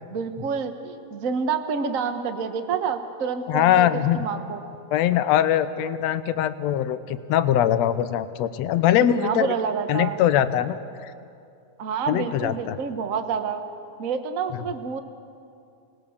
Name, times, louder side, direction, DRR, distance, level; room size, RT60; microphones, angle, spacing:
voice 1, 0.1-3.9 4.1-4.6 9.2-10.2 11.8-13.6 14.0-15.0, right 6 dB, 60° right, 7 dB, 0.8 m, -28 dB
voice 2, 3.5-4.2 4.9-9.5 9.9-10.8 11.0-11.1 12.1-12.8 14.5-14.6, left 11 dB, 70° left, 12 dB, 1.9 m, -22 dB
29.5 x 19.5 x 7.1 m, 2.5 s
omnidirectional pair, 3.5 m